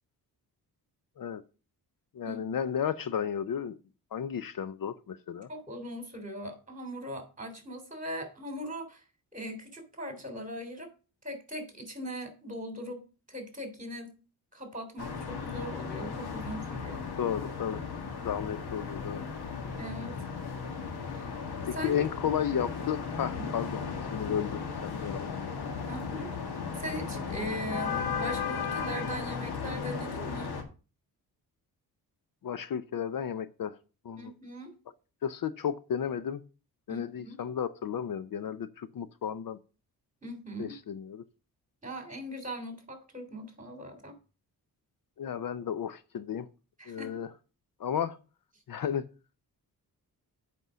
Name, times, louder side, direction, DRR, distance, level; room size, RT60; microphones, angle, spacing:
voice 1, 2.1-3.7 4.1-5.5 17.2-17.8 18.2-19.3 21.7-23.8 24.1-25.3 32.4-33.8 34.0-34.3 35.2-36.4 36.9-39.6 40.6-41.2 45.2-46.5 46.9-47.3 47.8-48.2 48.7-49.1, left 8 dB, 65° left, 0.7 m, -33 dB
voice 2, 5.5-9.0 9.3-10.9 11.2-13.0 13.3-14.1 14.5-17.0 19.7-20.2 21.1-21.3 21.7-22.0 23.4-23.5 25.0-25.2 25.9-26.3 26.8-30.5 34.2-34.7 36.9-37.4 40.2-40.8 41.8-44.2 46.8-47.2, equal, 20° right, 3.2 m, -40 dB
sound 1, 15.0-30.6, left 5 dB, 85° left, 1.9 m, -36 dB
8.0 x 5.4 x 6.2 m
cardioid pair, 85°, 38 cm